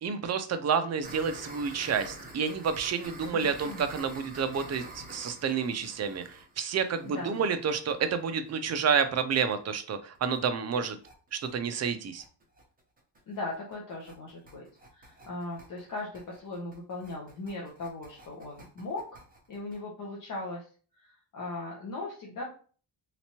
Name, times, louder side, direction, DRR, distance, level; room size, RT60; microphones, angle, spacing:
voice 1, 0.0-11.0 11.3-12.2, right 6 dB, 40° right, 9 dB, 0.4 m, -29 dB
sound 1, 1.0-8.7 9.0-9.1 9.4-9.5 9.8-9.9 10.1-10.4 10.7-19.8, right 2 dB, 20° right, 0.9 m, -48 dB
voice 2, 3.3-3.9 7.0-7.4 13.3-14.6 14.9-19.2 19.5-20.7 20.9-22.4, left 2 dB, 45° left, -3 dB, 0.8 m, -38 dB
3.3 x 2.9 x 2.9 m, 0.40 s
wide cardioid pair, 175°, 44 cm